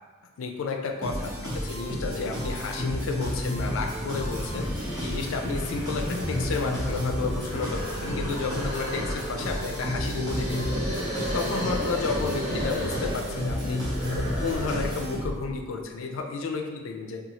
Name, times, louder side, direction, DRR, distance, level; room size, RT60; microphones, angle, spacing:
voice 1, 0.4-11.1 11.3-13.8 14.1-17.2, left 4 dB, 70° left, 3 dB, 0.4 m, -32 dB
sound 1, 1.0-15.6, left 1 dB, 20° right, 0.9 m, -31 dB
sound 2, 4.2-15.0, equal, 55° right, 1.3 m, -34 dB
2.7 x 2.3 x 2.8 m, 1.4 s
head